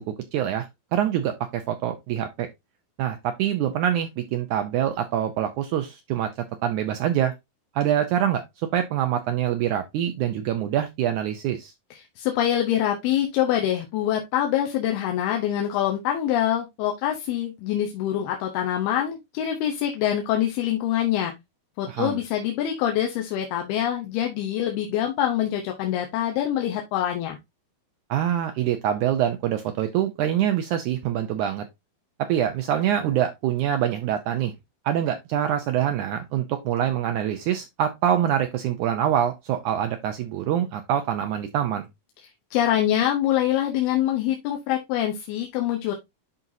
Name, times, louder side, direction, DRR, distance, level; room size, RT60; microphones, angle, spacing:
voice 1, 0.0-2.5 3.0-6.3 6.6-7.3 7.7-8.4 8.7-11.7 21.9-22.2 28.1-31.6 32.3-34.5 34.8-41.9, right 10 dB, 90° right, 1.7 m, -25 dB
voice 2, 11.9-21.3 21.8-27.4 42.5-46.0, left 11 dB, 90° left, 2.9 m, -25 dB
11.0 x 4.0 x 2.7 m
omnidirectional pair, 4.4 m